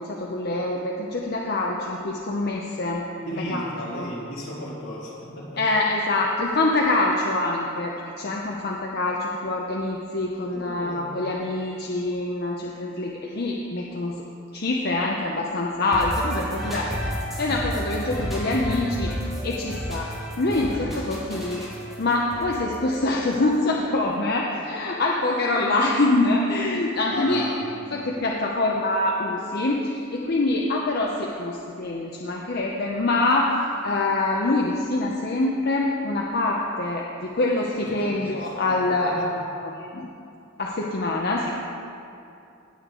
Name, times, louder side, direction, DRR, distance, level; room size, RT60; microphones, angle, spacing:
voice 1, 0.0-3.0 3.5-3.6 3.9-4.1 5.6-7.9 8.2-14.2 14.5-16.9 17.4-19.1 19.4-20.1 20.4-21.7 22.0-27.5 27.9-33.5 33.8-40.1 40.6-41.5, left 2 dB, 50° left, -1 dB, 0.7 m, -25 dB
voice 2, 3.2-5.7 10.5-11.1 20.5-21.2 27.1-27.7 37.8-38.1 38.4-39.3, equal, 75° left, -6 dB, 2.9 m, -36 dB
sound 1, 15.9-23.7, equal, ahead, 1.9 m, -32 dB
17.5 x 6.7 x 3.8 m, 2.6 s
head